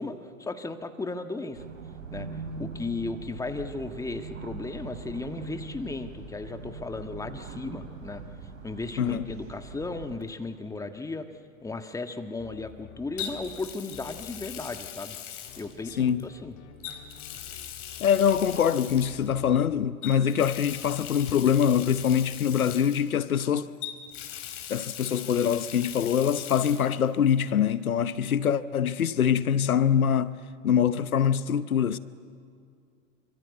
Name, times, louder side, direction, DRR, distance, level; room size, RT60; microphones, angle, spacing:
voice 1, 0.0-1.6 2.1-8.2 8.6-11.3 11.6-15.2 15.6-16.5, left 3 dB, 10° left, 1.5 m, -35 dB
sound 1, 1.5-10.2, right 4 dB, 70° right, 4.5 m, -41 dB
voice 2, 9.0-9.3 16.0-16.3 18.0-23.7 24.7-30.3 30.6-32.0, left 8 dB, 85° left, 0.9 m, -24 dB
Water tap faucet, 10.2-10.4 13.2-16.2 16.8-19.3 20.0-23.4 23.8-27.0 27.3-27.4 28.9-29.0, left 10 dB, 60° left, 3.9 m, -40 dB
sound 2, 12.4-15.2 15.5-20.1 20.4-22.3, left 8 dB, 40° left, 3.2 m, -51 dB
27.0 x 24.5 x 8.2 m
hypercardioid pair, 100°, 42 cm